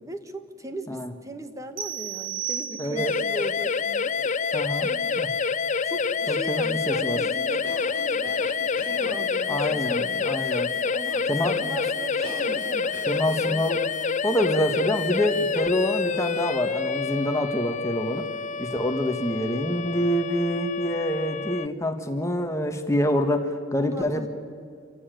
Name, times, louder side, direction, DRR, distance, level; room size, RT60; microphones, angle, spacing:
voice 1, 0.0-4.2 4.4-5.2 5.8-10.3 10.8-13.0 13.3-13.6 23.8-24.3, right 1 dB, 15° right, 8 dB, 1.4 m, -39 dB
sound 1, 1.8-3.3, right 9 dB, 45° right, 1.6 m, -33 dB
voice 2, 2.8-3.1 4.5-4.9 5.2-5.3 6.3-7.2 9.5-10.7 11.3-11.7 13.1-13.8 14.2-18.2 18.6-24.3, equal, 15° left, 5 dB, 1.6 m, -26 dB
sound 2, 3.0-21.7, left 5 dB, 35° left, 0.6 m, -27 dB
Cough, 7.6-9.2 12.2-12.7 12.9-13.3, equal, 70° right, 6.0 m, -39 dB
27.0 x 15.5 x 9.2 m, 2.2 s
head